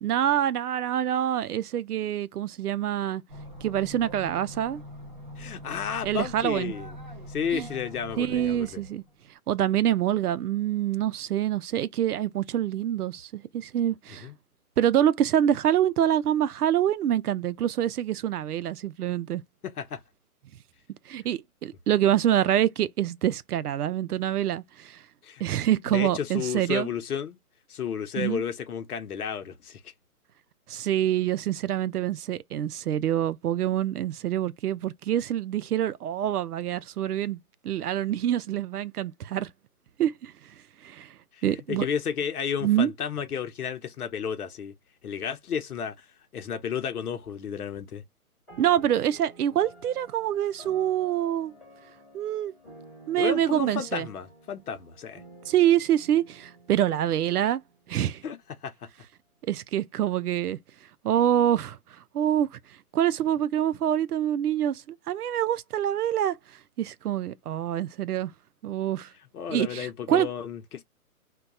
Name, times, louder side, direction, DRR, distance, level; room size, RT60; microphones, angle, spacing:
voice 1, 0.0-3.2 3.6-4.8 6.0-6.7 7.5-7.7 8.2-9.0 9.5-14.3 14.8-19.4 21.1-25.0 25.4-26.9 28.2-28.4 30.7-39.5 40.0-40.3 40.8-41.1 41.4-41.9 42.6-42.9 48.6-51.5 52.1-52.5 53.1-54.1 55.5-57.6 57.9-58.2 59.5-60.6 61.0-61.8 62.1-62.5 62.9-66.4 66.8-68.3 68.6-69.1 69.5-70.3, right 11 dB, 90° right, 0.5 m, -26 dB
sound 1, 3.3-9.2, left 1 dB, 35° right, 0.5 m, -43 dB
voice 2, 5.4-6.9 7.3-8.8 14.2-14.3 19.6-20.0 25.2-25.4 25.9-27.4 27.7-29.9 41.3-44.7 45.0-46.1 46.3-48.0 53.2-55.2 58.2-58.4 58.6-58.7 69.3-70.8, left 7 dB, 80° left, 0.7 m, -32 dB
sound 2, 48.5-58.2, right 1 dB, 5° left, 1.1 m, -52 dB
2.3 x 2.2 x 3.9 m
hypercardioid pair, 175°, 44 cm